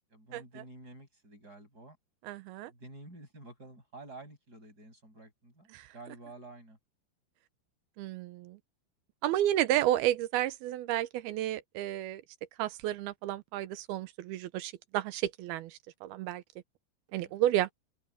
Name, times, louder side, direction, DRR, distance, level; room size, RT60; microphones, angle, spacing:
voice 1, 0.1-2.0 2.6-5.7 5.9-6.8 17.2-17.3, right 2 dB, 20° right, 7.6 m, -50 dB
voice 2, 2.2-2.7 5.7-5.9 8.0-8.6 9.2-12.2 12.6-16.4 17.1-17.7, right 13 dB, 75° right, 2.5 m, -31 dB
open air
omnidirectional pair, 5.0 m